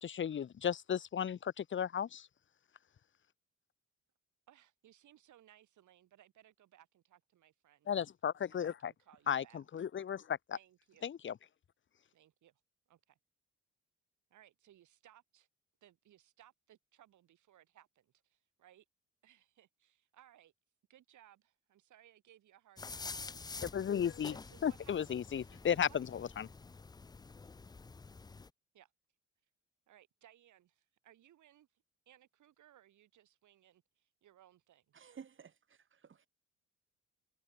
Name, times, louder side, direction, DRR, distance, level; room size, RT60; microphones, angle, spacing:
voice 1, 0.0-2.3 7.9-8.9 9.3-10.6 11.0-11.3 23.7-24.4 24.6-26.5, left 8 dB, 40° left, 0.9 m, -35 dB
voice 2, 4.5-7.9 8.5-9.7 10.5-11.1 12.1-12.6 12.9-13.2 14.3-15.5 15.8-18.8 19.2-20.5 20.9-23.6 24.3-26.2 28.7-28.9 29.9-35.2, right 12 dB, 75° right, 6.6 m, -64 dB
sound 1, 22.8-28.5, left 4 dB, 15° left, 0.4 m, -48 dB
voice 3, 34.9-36.3, right 7 dB, 40° right, 1.8 m, -54 dB
cardioid pair, 90°, 30 cm